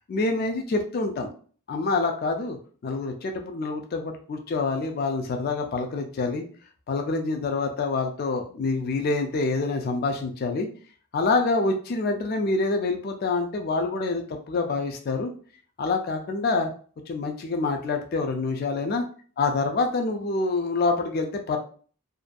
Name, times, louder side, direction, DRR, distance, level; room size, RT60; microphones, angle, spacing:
voice 1, 0.1-1.3 1.7-2.6 2.8-6.4 6.9-10.7 11.1-15.3 15.8-16.7 17.1-19.0 19.4-21.6, left 3 dB, 45° left, 4 dB, 0.3 m, -26 dB
2.5 x 2.2 x 2.4 m, 0.43 s
head